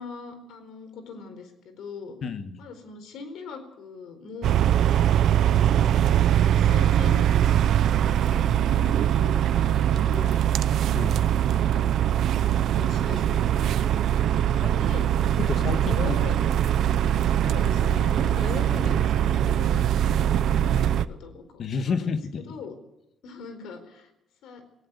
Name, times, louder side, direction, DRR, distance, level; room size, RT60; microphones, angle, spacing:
voice 1, 0.0-2.2 2.6-5.9 6.3-7.2 8.2-10.4 11.5-11.9 12.3-13.7 14.4-15.3 15.5-16.3 17.3-21.9 22.4-22.7 23.2-24.1 24.4-24.6, left 5 dB, 85° left, 9 dB, 4.3 m, -41 dB
voice 2, 2.2-2.6 10.9-11.3 14.6-14.7 15.4-16.2 21.6-22.6, left 5 dB, 45° left, 10 dB, 1.6 m, -30 dB
sound 1, 4.4-21.1, right 10 dB, 65° right, 0.7 m, -22 dB
18.5 x 17.5 x 8.2 m, 0.84 s
cardioid pair, 170°, 0 cm